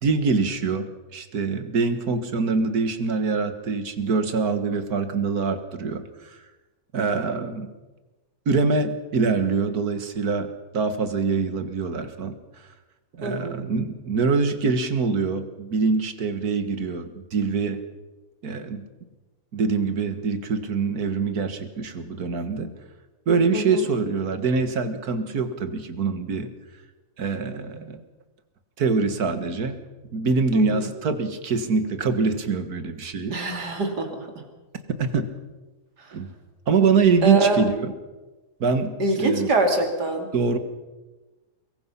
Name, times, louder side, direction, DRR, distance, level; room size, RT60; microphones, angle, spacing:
voice 1, 0.0-6.4 6.9-7.7 8.5-10.5 10.7-12.4 13.2-17.8 18.4-18.8 19.5-22.7 23.3-26.5 27.2-28.0 28.8-29.8 30.1-33.4 35.0-35.3 36.1-36.3 36.7-37.9 38.6-39.5 40.3-40.6, right 4 dB, 70° right, 9 dB, 2.1 m, -24 dB
voice 2, 13.2-13.6 23.5-23.8 30.5-30.9 33.3-34.3 37.2-37.6 39.0-40.3, right 2 dB, 90° right, 4 dB, 3.4 m, -24 dB
24.0 x 21.0 x 5.7 m, 1.2 s
omnidirectional pair, 1.7 m